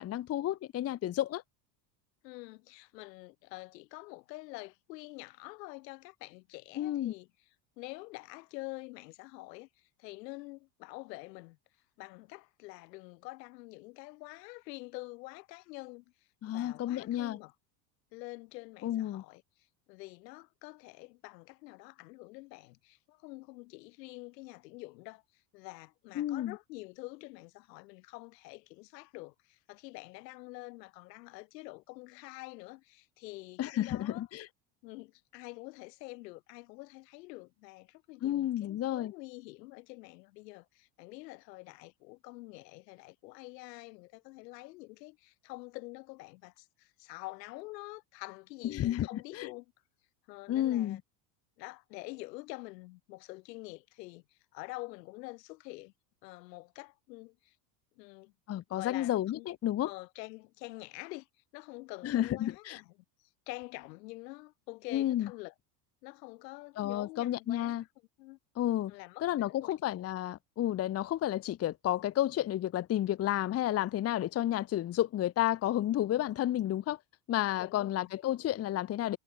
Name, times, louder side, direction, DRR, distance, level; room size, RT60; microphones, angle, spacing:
voice 1, 0.0-1.4 6.8-7.1 16.4-17.4 18.8-19.2 26.2-26.6 33.6-34.5 38.2-39.1 48.6-49.5 50.5-51.0 58.5-59.9 62.0-62.8 64.9-65.3 66.8-67.8 68.6-68.9 69.2-77.0 77.3-79.2, left 13 dB, 30° left, 0.8 m, -31 dB
voice 2, 2.2-7.3 7.8-11.6 12.0-16.1 16.5-17.5 18.1-19.4 19.9-34.3 34.8-49.7 50.3-51.0 51.6-55.9 56.2-57.6 58.0-59.5 59.8-61.3 61.5-62.9 63.2-65.5 66.0-67.8 68.2-68.4 68.9-69.7 77.6-78.1, left 22 dB, 90° left, 2.3 m, -47 dB
supercardioid pair, 125°, 48 cm